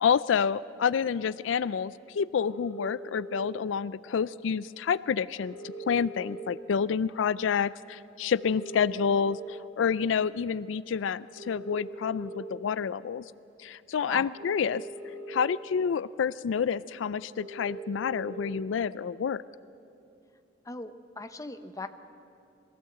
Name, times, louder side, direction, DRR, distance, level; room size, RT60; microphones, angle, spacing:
voice 1, 0.0-13.2 13.6-14.9 15.3-19.4, left 6 dB, 80° left, 18 dB, 0.4 m, -28 dB
sound 1, 2.4-3.4 5.4-6.4 8.3-9.4 11.3-12.4 14.3-15.4 17.3-18.4, equal, 80° right, 5.8 m, -42 dB
voice 2, 20.6-21.9, left 2 dB, 20° left, 9 dB, 0.8 m, -39 dB
22.5 x 16.5 x 7.8 m, 2.8 s
head